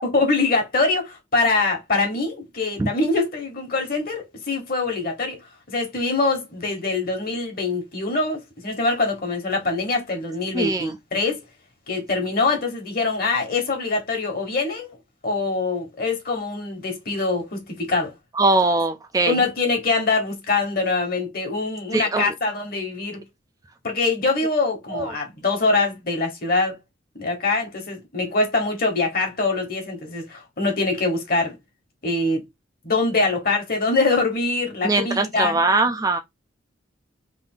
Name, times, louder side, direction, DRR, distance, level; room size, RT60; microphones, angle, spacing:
voice 1, 0.1-5.4 5.7-11.4 11.9-14.9 15.2-18.1 19.3-23.2 23.8-26.8 27.1-31.6 32.0-32.4 32.8-35.6, left 3 dB, 50° left, 1.4 m, -24 dB
voice 2, 10.5-10.9 18.4-19.4 21.9-22.3 24.9-25.1 34.8-36.2, right 2 dB, 20° right, 0.4 m, -21 dB
3.5 x 2.6 x 3.7 m
head